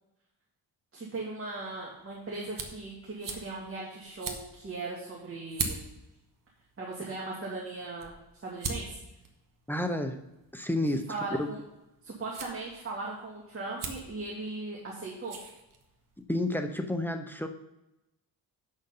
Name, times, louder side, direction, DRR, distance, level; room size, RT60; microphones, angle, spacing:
voice 1, 0.9-5.8 6.8-8.2 8.4-9.0 11.1-11.6 12.0-15.4, right 3 dB, 30° right, -4 dB, 2.1 m, -38 dB
sound 1, 1.5-16.2, right 4 dB, 50° right, 1.4 m, -43 dB
voice 2, 9.7-10.2 10.5-11.5 16.3-17.5, left 1 dB, 5° left, 5 dB, 0.7 m, -30 dB
7.9 x 6.6 x 5.5 m, 0.93 s
cardioid pair, 120°, 41 cm